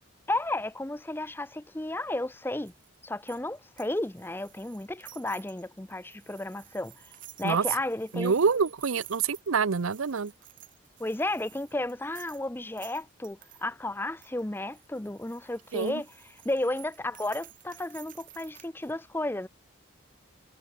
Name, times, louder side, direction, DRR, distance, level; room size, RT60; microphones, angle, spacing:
voice 1, 0.3-2.7 3.0-7.1 7.4-8.3 11.0-16.1 16.4-19.5, left 1 dB, 10° left, 0.6 m, -33 dB
sound 1, 2.6-13.6 14.2-18.9, right 14 dB, 40° right, 3.1 m, -53 dB
voice 2, 8.1-10.3 15.7-16.0, right 5 dB, 85° right, 0.7 m, -26 dB
head